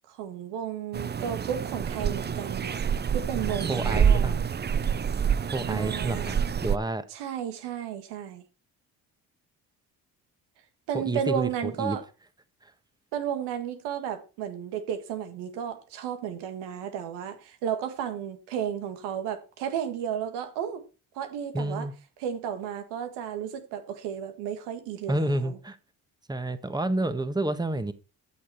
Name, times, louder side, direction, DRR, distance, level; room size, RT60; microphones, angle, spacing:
voice 1, 0.1-4.4 5.7-6.3 7.1-8.4 10.9-12.0 13.1-20.8 21.1-21.9 22.2-25.6, right 9 dB, 85° right, 1.8 m, -33 dB
sound 1, 0.9-6.8, right 7 dB, 25° right, 0.6 m, -27 dB
voice 2, 3.4-4.4 5.5-7.0 10.9-12.0 12.6-12.7 21.5-21.9 25.1-25.8 26.3-27.9, right 2 dB, 10° right, 1.4 m, -30 dB
13.0 x 6.6 x 4.6 m
supercardioid pair, 65°, 40 cm